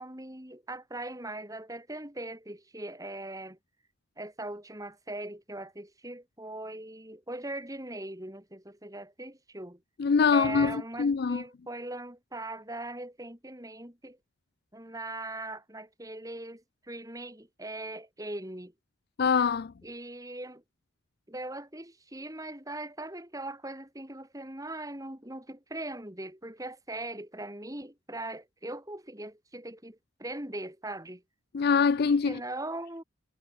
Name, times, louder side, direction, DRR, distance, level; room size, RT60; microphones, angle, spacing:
voice 1, 0.0-3.6 4.2-9.8 10.3-14.2 14.7-18.7 19.8-20.6 21.3-31.2 32.3-33.0, right 2 dB, 15° right, 3.6 m, -40 dB
voice 2, 10.0-11.4 19.2-19.7 31.5-32.4, left 5 dB, 50° left, 0.4 m, -24 dB
head